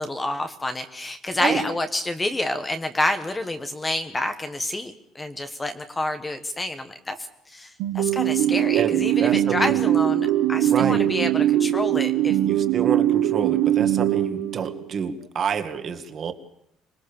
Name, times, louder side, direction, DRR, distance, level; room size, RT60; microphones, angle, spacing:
voice 1, 0.0-7.2 7.5-12.4, left 1 dB, 10° left, 8 dB, 1.2 m, -28 dB
sound 1, 7.8-15.0, right 12 dB, 80° right, 1.4 m, -21 dB
voice 2, 8.8-9.8 10.6-11.0 12.4-16.3, right 6 dB, 35° right, 7 dB, 2.0 m, -28 dB
26.0 x 20.5 x 7.1 m, 0.74 s
cardioid pair, 170°, 0 cm